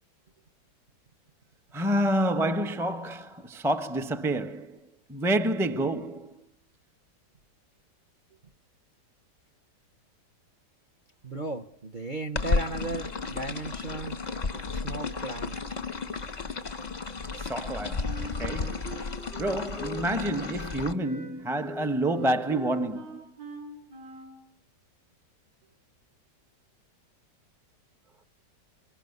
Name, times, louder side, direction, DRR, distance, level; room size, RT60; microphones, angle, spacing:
voice 1, 1.7-4.8 5.1-6.4 17.4-18.9 19.4-23.3, right 1 dB, ahead, 0.8 m, -28 dB
voice 2, 11.2-14.2 14.5-15.6, right 3 dB, 30° right, 1.0 m, -36 dB
sound 1, 12.4-20.9, left 4 dB, 30° left, 0.9 m, -33 dB
Wind instrument woodwind instrument, 17.6-24.4, right 2 dB, 65° right, 6.3 m, -43 dB
25.0 x 21.5 x 9.5 m
omnidirectional pair, 1.9 m